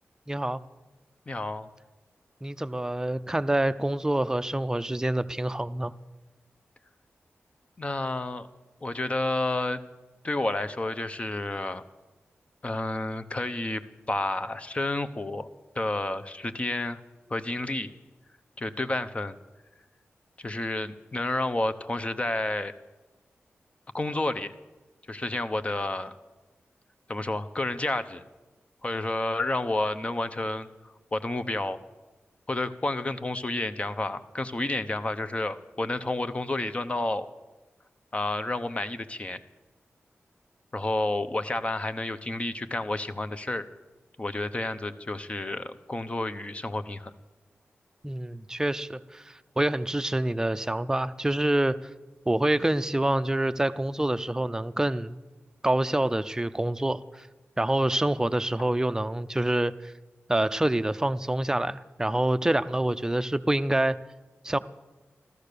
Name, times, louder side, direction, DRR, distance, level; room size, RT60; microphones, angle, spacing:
voice 1, 0.3-0.6 2.4-5.9 48.0-51.9 52.3-55.2 55.6-57.3 57.6-59.9 60.3-64.0 64.4-64.6, right 1 dB, 15° right, 12 dB, 0.5 m, -26 dB
voice 2, 1.3-1.7 7.8-8.5 8.8-9.8 10.2-11.8 12.6-15.5 15.7-17.0 17.3-17.9 18.6-19.4 20.4-22.7 23.9-24.6 25.1-26.1 27.1-28.2 28.8-30.7 31.1-31.8 32.5-37.3 38.1-39.4 40.7-43.7 44.2-47.1, left 2 dB, 30° left, 11 dB, 0.8 m, -30 dB
15.0 x 13.5 x 6.8 m, 1.2 s
wide cardioid pair, 110°, 4 cm